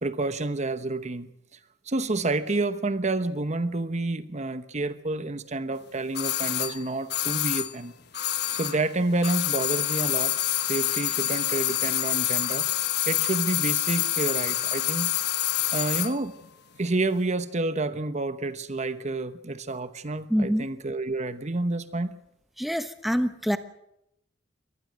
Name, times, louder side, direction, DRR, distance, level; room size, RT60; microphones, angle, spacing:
voice 1, 0.0-1.6 1.9-7.9 8.2-8.3 8.5-10.3 10.7-12.7 13.1-15.1 15.7-16.3 16.8-22.2, right 2 dB, 40° right, 12 dB, 1.0 m, -29 dB
sound 1, 6.1-8.9 9.2-16.2 16.4-16.5, left 13 dB, 60° left, 1.2 m, -27 dB
voice 2, 20.3-20.6 22.6-23.6, equal, ahead, 9 dB, 1.1 m, -25 dB
24.0 x 19.0 x 6.4 m, 0.81 s
head